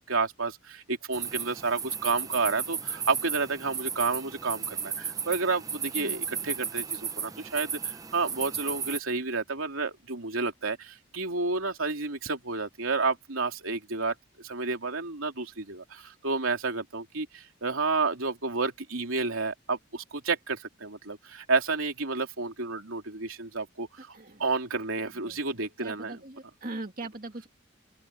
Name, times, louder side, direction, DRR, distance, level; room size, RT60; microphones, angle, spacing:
voice 1, 0.0-14.1 14.4-24.1 24.4-26.2, right 4 dB, 90° right, 3.2 m, -30 dB
sound 1, 1.1-9.0, right 6 dB, 15° right, 0.6 m, -35 dB
voice 2, 6.0-6.5 24.1-24.4 25.2-25.4 25.8-27.5, right 2 dB, 40° right, 2.2 m, -41 dB
open air
head